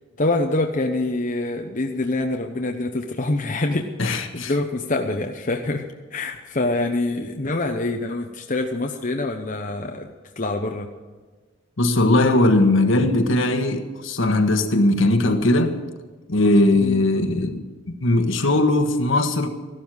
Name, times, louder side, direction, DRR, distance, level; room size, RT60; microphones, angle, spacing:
voice 1, 0.2-5.9 6.1-10.9 16.8-17.0, left 2 dB, 35° left, 0.8 m, -25 dB
voice 2, 4.0-4.5 5.8-5.9 11.8-15.8 16.3-19.5, left 2 dB, 65° left, 1.4 m, -19 dB
15.0 x 12.0 x 6.3 m
head